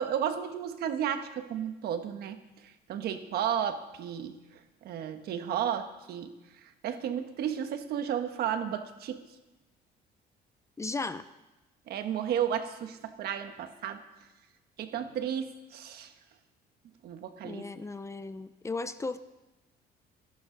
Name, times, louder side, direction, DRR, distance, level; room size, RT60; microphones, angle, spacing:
voice 1, 0.0-4.4 4.8-9.2 11.9-14.0 14.8-16.1 17.0-17.7, right 9 dB, 70° right, 8 dB, 1.4 m, -33 dB
voice 2, 10.8-11.2 17.4-19.2, left 3 dB, 15° left, 13 dB, 0.6 m, -36 dB
28.5 x 11.5 x 3.9 m, 1.1 s
cardioid pair, 110°, 17 cm